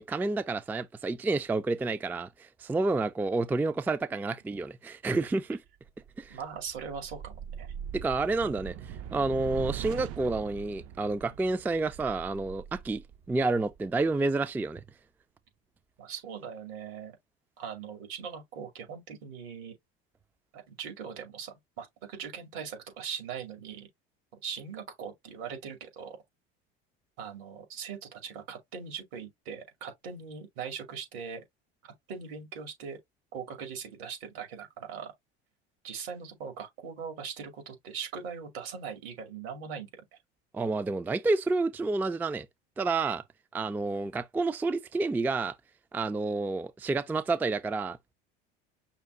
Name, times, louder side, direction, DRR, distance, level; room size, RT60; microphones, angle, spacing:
voice 1, 0.0-5.6 6.2-6.4 7.9-13.0 13.3-14.8 40.5-42.5 42.8-43.2 43.5-45.5 45.9-48.1, right 3 dB, 5° right, 0.3 m, -29 dB
sound 1, 5.8-14.3, right 9 dB, 45° right, 0.6 m, -42 dB
voice 2, 6.3-7.7 16.0-17.1 17.6-19.7 20.5-23.9 24.4-26.2 27.2-31.4 31.8-33.0 33.3-35.1 35.8-39.9, right 6 dB, 75° right, 2.4 m, -40 dB
5.7 x 2.3 x 3.7 m
hypercardioid pair, 80°, 32 cm